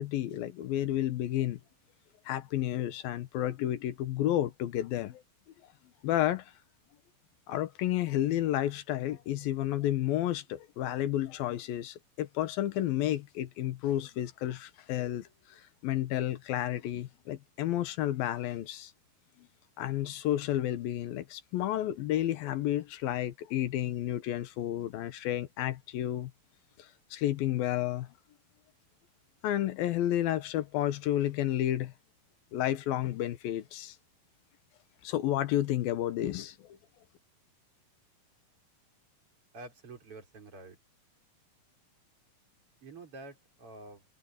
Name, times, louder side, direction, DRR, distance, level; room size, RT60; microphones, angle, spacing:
voice 1, 0.0-1.6 2.3-5.2 6.0-6.5 7.5-18.9 19.4-19.5 19.8-26.3 26.8-28.1 29.4-31.9 32.5-34.0 35.0-36.8, left 13 dB, 80° left, 2.9 m, -31 dB
voice 2, 39.5-40.8 42.8-44.0, right 2 dB, 35° right, 5.6 m, -48 dB
omnidirectional pair, 4.2 m